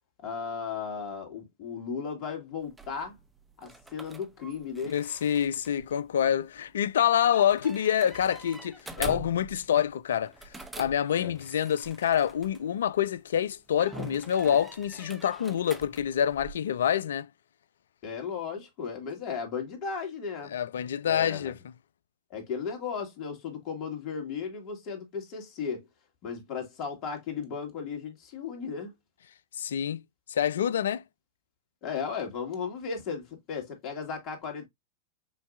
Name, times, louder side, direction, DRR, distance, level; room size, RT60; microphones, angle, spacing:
voice 1, 0.2-3.2 3.6-5.0 9.0-9.2 10.8-10.9 11.2-11.4 18.0-20.5 21.0-21.5 22.3-25.8 26.2-28.9 31.8-34.7, left 6 dB, 45° left, 1.9 m, -35 dB
sound 1, 2.6-13.1 13.7-16.5, right 3 dB, 10° right, 0.7 m, -45 dB
voice 2, 4.9-10.3 10.8-17.3 20.5-21.6 29.6-30.0 30.3-31.0, left 9 dB, 70° left, 0.3 m, -27 dB
5.7 x 2.7 x 2.5 m
hypercardioid pair, 95°, 0 cm